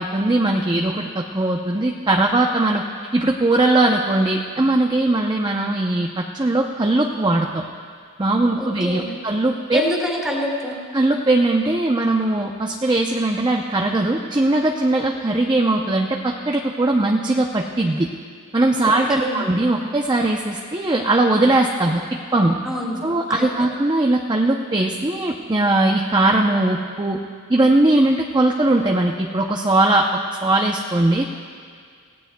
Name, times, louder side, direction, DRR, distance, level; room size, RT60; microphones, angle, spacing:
voice 1, 0.0-2.8 3.1-7.6 8.2-9.8 10.9-18.1 18.5-22.6 23.0-27.2 27.5-30.1 30.4-31.2, right 2 dB, 20° right, 1 dB, 0.6 m, -20 dB
voice 2, 8.6-9.1 9.7-10.8 18.8-19.4 22.6-23.4, left 1 dB, 5° right, -3 dB, 2.7 m, -26 dB
28.0 x 17.0 x 2.3 m, 2.1 s
head